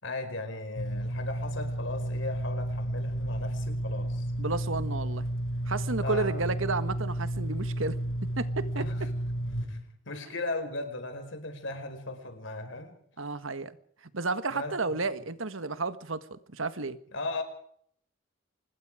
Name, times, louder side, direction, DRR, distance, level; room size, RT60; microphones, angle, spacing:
voice 1, 0.0-4.3 6.0-6.5 8.8-8.9 9.5-13.0 14.5-14.8 17.1-17.4, left 2 dB, 65° left, 5.3 m, -37 dB
sound 1, 0.8-9.7, right 1 dB, 80° left, 4.2 m, -32 dB
voice 2, 4.4-5.3 5.7-9.1 13.2-13.8 14.1-17.0, right 3 dB, 80° right, 1.5 m, -32 dB
26.0 x 21.0 x 5.0 m
head